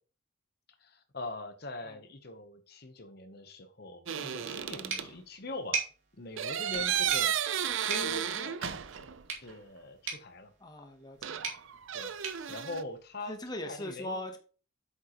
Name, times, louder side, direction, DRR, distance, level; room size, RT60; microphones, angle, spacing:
voice 1, 0.8-5.8 6.2-9.0 9.4-10.5 11.9-12.1 12.5-13.4 13.6-14.2, left 2 dB, 50° left, 8 dB, 0.9 m, -42 dB
sound 1, 4.1-5.1 6.4-9.2 9.5-9.6 11.2-12.8, right 9 dB, 75° right, 0.6 m, -33 dB
voice 2, 4.7-5.1 10.6-11.5 13.3-14.4, left 1 dB, 20° left, 5 dB, 1.0 m, -41 dB
sound 2, 4.9-13.6, right 5 dB, 90° right, 2.4 m, -42 dB
8.3 x 7.3 x 3.0 m, 0.37 s
head